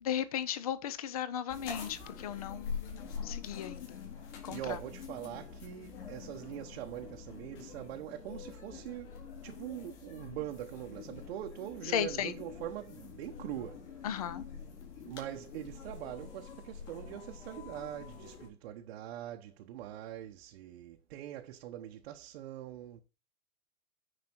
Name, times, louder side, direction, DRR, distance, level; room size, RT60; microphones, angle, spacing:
voice 1, 0.0-4.0 4.4-4.8 11.9-12.3 14.0-14.4, left 9 dB, 25° left, 0.4 m, -36 dB
sound 1, 1.5-18.5, left 6 dB, 50° left, 4.2 m, -46 dB
voice 2, 4.5-14.1 15.0-23.0, right 12 dB, 45° right, 0.8 m, -43 dB
9.7 x 4.9 x 4.3 m
supercardioid pair, 170°, 44 cm